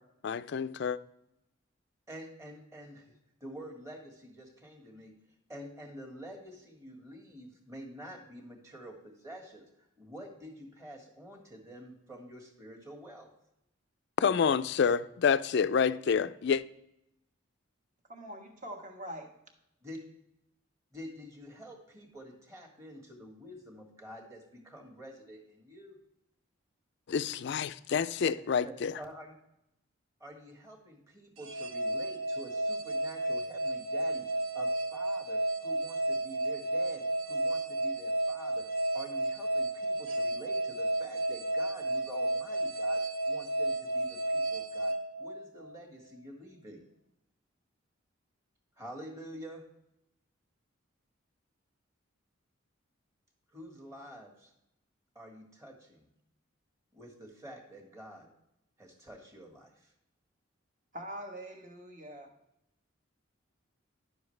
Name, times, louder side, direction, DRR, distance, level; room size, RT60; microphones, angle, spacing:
voice 1, 0.2-1.0 14.2-16.6 27.1-28.9, left 6 dB, 55° left, 0.3 m, -28 dB
voice 2, 2.1-3.1 3.4-5.1 5.5-9.6 10.0-13.3 19.8-20.0 20.9-26.0 28.2-28.3 28.6-29.3 30.2-38.6 38.9-46.8 48.8-49.6 53.5-54.5 55.1-56.0 56.9-58.3 58.8-59.9, equal, 15° right, 1.6 m, -48 dB
voice 3, 18.1-19.3 60.9-62.3, equal, 35° right, 1.3 m, -43 dB
sound 1, 31.4-45.8, right 1 dB, 70° right, 1.0 m, -32 dB
10.5 x 7.0 x 3.2 m
head